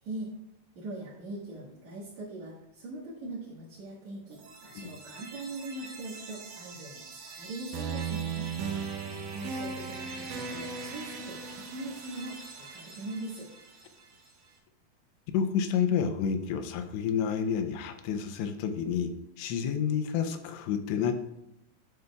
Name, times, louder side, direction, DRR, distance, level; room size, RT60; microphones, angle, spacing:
voice 1, 0.7-8.5 9.3-13.5, right 2 dB, 55° right, -9 dB, 2.3 m, -41 dB
sound 1, 4.3-14.3, right 5 dB, 80° right, 1.8 m, -39 dB
voice 2, 15.3-19.1 19.4-21.1, left 7 dB, 90° left, 8 dB, 2.9 m, -29 dB
10.5 x 6.8 x 2.3 m, 0.84 s
omnidirectional pair, 5.0 m